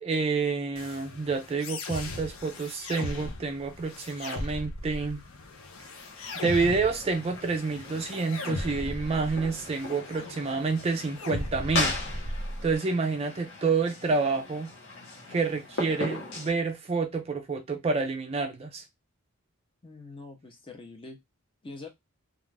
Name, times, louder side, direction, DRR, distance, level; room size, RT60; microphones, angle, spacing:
voice 1, 0.0-5.2 6.4-11.9 12.6-14.7 15.3-18.8, right 4 dB, 30° right, 0.3 m, -28 dB
sound 1, 0.8-12.8, left 2 dB, 75° left, 0.6 m, -38 dB
sound 2, 5.9-16.5, left 2 dB, 55° left, 1.0 m, -38 dB
voice 2, 19.8-21.2 21.6-21.9, left 3 dB, 25° left, 0.5 m, -44 dB
2.4 x 2.4 x 3.2 m
head